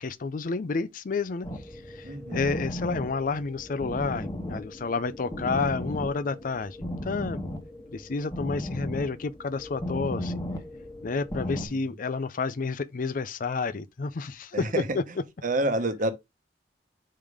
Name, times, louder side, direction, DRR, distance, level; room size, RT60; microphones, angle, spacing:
voice 1, 0.0-1.5 1.9-6.8 7.0-7.4 7.9-10.3 11.0-15.1, left 4 dB, 50° left, 0.5 m, -30 dB
sound 1, 1.4-11.7, left 1 dB, 20° left, 1.2 m, -36 dB
voice 2, 2.0-2.4 11.7-11.9 14.5-15.0 15.4-16.1, right 1 dB, 50° right, 1.0 m, -28 dB
5.4 x 5.1 x 3.5 m
head